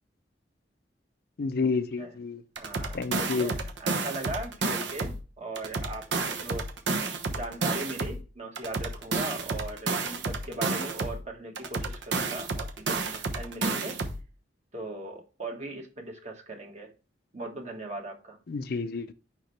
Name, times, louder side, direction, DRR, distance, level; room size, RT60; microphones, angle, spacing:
voice 1, 1.4-2.4 2.9-3.5 18.5-19.1, left 4 dB, 55° left, 0.4 m, -30 dB
voice 2, 2.6-14.0 14.7-16.9 17.3-18.4, right 2 dB, 40° right, 1.5 m, -39 dB
sound 1, 2.6-5.2 5.6-8.2 8.6-11.2 11.6-14.2, right 3 dB, 75° right, 1.0 m, -31 dB
6.4 x 5.2 x 3.2 m
head